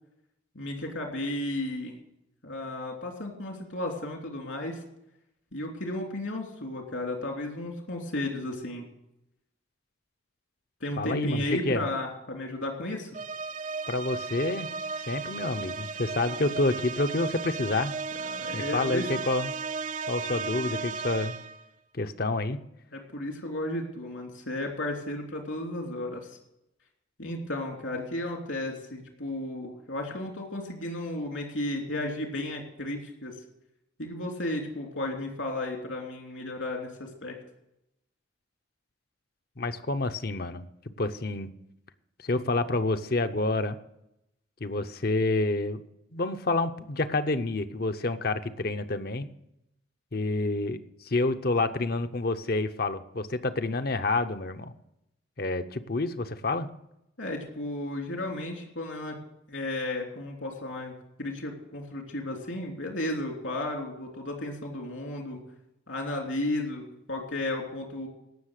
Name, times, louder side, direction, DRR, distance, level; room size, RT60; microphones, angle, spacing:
voice 1, 0.5-2.0 2.4-4.8 5.5-8.8 10.8-13.1 18.2-19.1 22.9-26.4 27.2-33.4 34.0-37.4 57.2-59.1 59.5-60.9 61.2-65.4 65.9-68.1, left 1 dB, 80° left, 1 dB, 3.2 m, -34 dB
voice 2, 11.0-11.8 13.9-14.7 15.1-17.9 18.5-19.5 20.1-21.4 21.9-22.6 39.6-40.7 41.0-41.5 42.2-43.8 44.6-45.8 46.1-49.3 50.1-54.7 55.4-56.7, left 2 dB, 50° left, 9 dB, 0.7 m, -28 dB
sound 1, 13.1-21.7, right 4 dB, 40° right, 0.5 m, -35 dB
17.5 x 6.6 x 6.5 m, 0.83 s
head